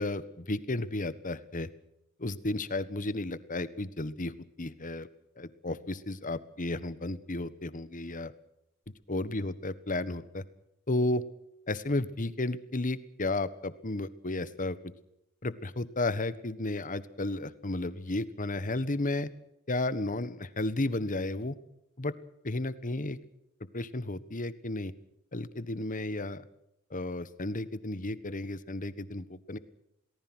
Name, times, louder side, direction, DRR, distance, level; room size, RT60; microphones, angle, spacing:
voice 1, 0.0-1.7 2.2-5.1 5.4-8.3 9.1-10.4 10.9-11.2 11.7-14.8 15.4-19.3 19.7-21.6 22.0-22.1 22.4-23.2 23.7-24.9 25.3-26.4 26.9-29.6, left 2 dB, 40° left, 14 dB, 1.4 m, -33 dB
28.5 x 19.0 x 6.3 m, 0.82 s
head